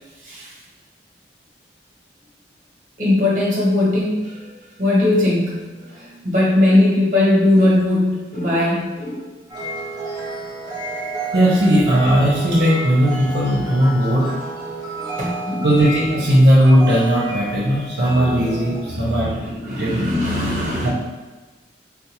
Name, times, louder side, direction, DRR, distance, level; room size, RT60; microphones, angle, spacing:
voice 1, 3.0-4.4 4.8-9.3 15.2-15.7 18.0-18.4 18.9-20.9, left 1 dB, 45° right, -5 dB, 1.1 m, -19 dB
sound 1, 9.5-18.8, right 2 dB, 25° right, 0.8 m, -30 dB
voice 2, 11.3-14.3 15.6-20.0 20.8-20.9, equal, 70° right, -7 dB, 0.8 m, -17 dB
3.7 x 2.4 x 2.9 m, 1.2 s
head